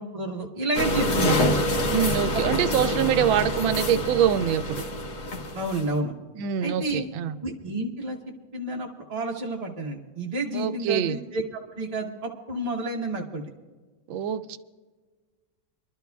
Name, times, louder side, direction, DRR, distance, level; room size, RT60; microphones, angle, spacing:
voice 1, 0.0-1.5 2.3-2.4 5.5-6.1 6.6-7.0 7.4-8.2 8.5-13.5, right 2 dB, 30° right, -1 dB, 0.7 m, -30 dB
sound 1, 0.7-5.9, left 1 dB, 60° left, 1.8 m, -26 dB
voice 2, 1.9-4.8 6.4-7.3 10.5-11.2 14.1-14.6, right 9 dB, 85° right, 11 dB, 1.4 m, -25 dB
27.0 x 12.0 x 2.3 m, 1.4 s
omnidirectional pair, 2.1 m